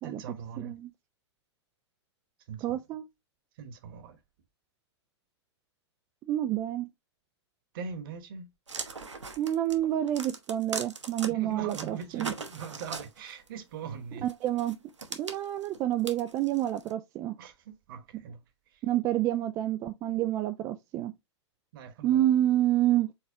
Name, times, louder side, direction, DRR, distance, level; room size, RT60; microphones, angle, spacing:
voice 1, 0.0-0.8 2.5-2.8 3.6-4.2 7.7-8.5 11.3-14.3 17.4-17.5 17.9-18.4 21.7-22.2, right 6 dB, 50° right, 1.2 m, -41 dB
voice 2, 0.6-0.9 2.6-3.0 6.3-6.9 9.4-12.3 14.2-14.8 15.1-17.4 18.8-21.1 22.0-23.1, right 13 dB, 20° right, 0.3 m, -28 dB
sound 1, 8.7-11.3 11.7-13.5 14.3-16.9, right 4 dB, 80° right, 1.1 m, -40 dB
4.8 x 4.0 x 2.7 m
figure-of-eight pair, 105°, 15 cm